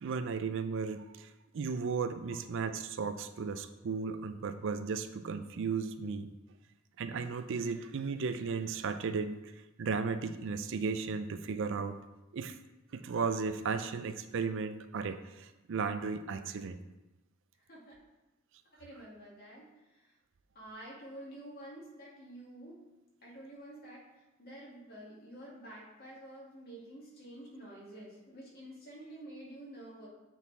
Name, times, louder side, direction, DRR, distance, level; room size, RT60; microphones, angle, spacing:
voice 1, 0.0-6.3 7.0-9.4 9.8-12.0 12.3-12.6 12.9-16.8, right 5 dB, 65° right, 10 dB, 0.4 m, -35 dB
voice 2, 18.8-20.1 20.5-22.8 23.2-24.1 24.4-30.1, right 1 dB, 50° left, -4 dB, 2.1 m, -49 dB
8.2 x 4.0 x 4.1 m, 1.0 s
head